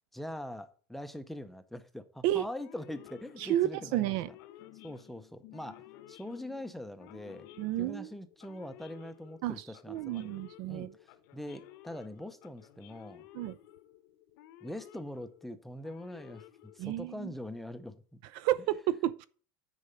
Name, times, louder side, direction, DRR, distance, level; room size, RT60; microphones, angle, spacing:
voice 1, 0.1-4.1 4.8-7.5 7.8-10.4 10.7-13.3 14.6-18.2, left 1 dB, ahead, 0.5 m, -43 dB
Male speech man speaking / Siren, 2.6-17.3, left 13 dB, 65° left, 1.0 m, -55 dB
sound 1, 2.9-7.7, left 18 dB, 40° left, 0.8 m, -58 dB
voice 2, 3.4-4.3 7.6-8.1 9.4-10.9 13.3-13.6 16.8-17.3 18.3-19.3, right 14 dB, 45° right, 0.4 m, -31 dB
9.8 x 4.8 x 5.4 m
cardioid pair, 175°, 11 cm